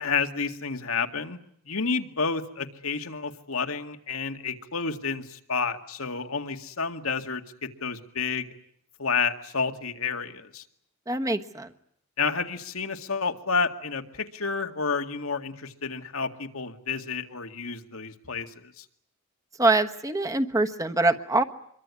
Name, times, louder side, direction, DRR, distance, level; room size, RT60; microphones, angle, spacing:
voice 1, 0.0-1.4 1.7-8.5 9.0-10.6 12.2-18.9, left 5 dB, 80° left, 6 dB, 2.1 m, -30 dB
voice 2, 11.1-11.7 19.6-21.4, right 2 dB, 15° right, 7 dB, 1.3 m, -24 dB
26.0 x 23.0 x 9.7 m, 0.69 s
head